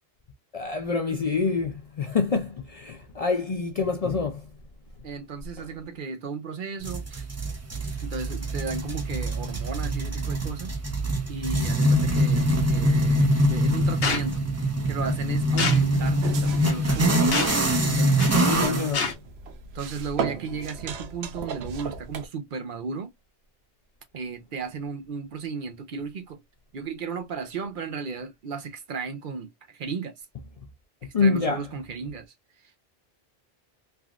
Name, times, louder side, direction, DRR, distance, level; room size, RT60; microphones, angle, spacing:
voice 1, 0.5-4.4 5.6-5.7 18.3-19.1 31.1-31.7, left 4 dB, 55° left, 0.4 m, -26 dB
voice 2, 5.0-7.3 8.0-10.7 11.3-14.4 14.8-17.3 18.0-18.8 19.7-23.1 24.1-26.4 26.7-30.1 31.0-32.3, right 5 dB, 60° right, 0.7 m, -35 dB
sound 1, 6.8-19.0, right 1 dB, 20° right, 0.5 m, -24 dB
sound 2, 14.0-14.3 15.6-15.8 16.6-16.8 17.3-17.6 18.2-18.5 18.9-19.1, left 5 dB, 75° left, 1.0 m, -27 dB
sound 3, 16.2-22.3, right 5 dB, 90° right, 0.9 m, -37 dB
3.4 x 2.3 x 2.3 m
omnidirectional pair, 1.0 m